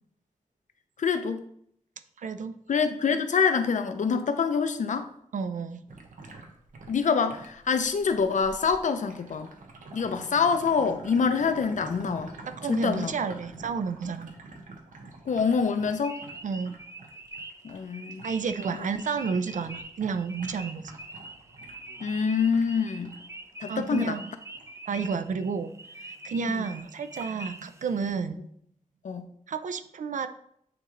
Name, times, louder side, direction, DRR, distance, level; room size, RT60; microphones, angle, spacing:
voice 1, 1.0-1.4 2.7-5.1 6.9-9.5 9.9-12.3 12.7-13.1 15.3-16.2 17.6-18.2 22.0-23.1 23.6-24.2 26.5-26.6 29.0-29.3, left 5 dB, 70° left, 8 dB, 0.6 m, -26 dB
voice 2, 2.2-2.6 5.3-5.8 12.5-14.3 16.4-16.7 18.2-20.9 23.7-24.3 24.9-28.4 29.5-30.3, right 5 dB, 75° right, 10 dB, 0.5 m, -31 dB
sound 1, 5.9-17.8 18.1-23.2 23.6-23.9 24.6-24.7, right 3 dB, 90° right, 1.0 m, -48 dB
sound 2, 15.3-28.1, right 2 dB, 20° right, 0.5 m, -45 dB
8.7 x 3.2 x 3.8 m, 0.69 s
wide cardioid pair, 125°, 13 cm